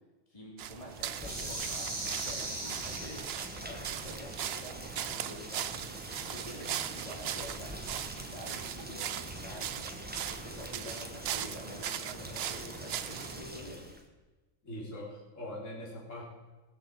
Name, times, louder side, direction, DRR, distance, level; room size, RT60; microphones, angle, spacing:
voice 1, 0.3-3.2 3.6-5.9 6.2-13.9, equal, 25° left, -3 dB, 2.9 m, -48 dB
sound 1, 0.6-13.4, right 10 dB, 60° right, 0.7 m, -39 dB
Rain, 0.9-14.0, right 1 dB, 10° right, 1.3 m, -44 dB
sound 2, 1.2-3.8, right 2 dB, 25° right, 1.4 m, -39 dB
voice 2, 14.6-16.2, left 1 dB, 70° left, -4 dB, 4.1 m, -43 dB
18.5 x 7.0 x 7.3 m, 1.2 s
omnidirectional pair, 1.3 m